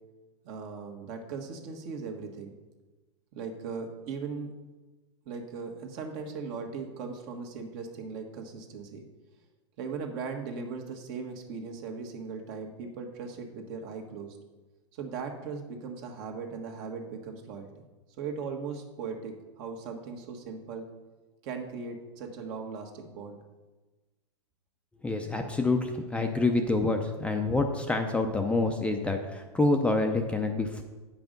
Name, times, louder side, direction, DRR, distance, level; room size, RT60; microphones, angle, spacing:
voice 1, 0.4-2.5 3.3-4.5 5.2-9.0 9.8-14.4 14.9-17.7 18.2-20.9 21.4-23.4, right 5 dB, 50° right, 3 dB, 1.6 m, -38 dB
voice 2, 25.0-30.8, left 2 dB, 10° left, 4 dB, 0.6 m, -27 dB
9.0 x 5.9 x 5.2 m, 1.2 s
hypercardioid pair, 125°, 15 cm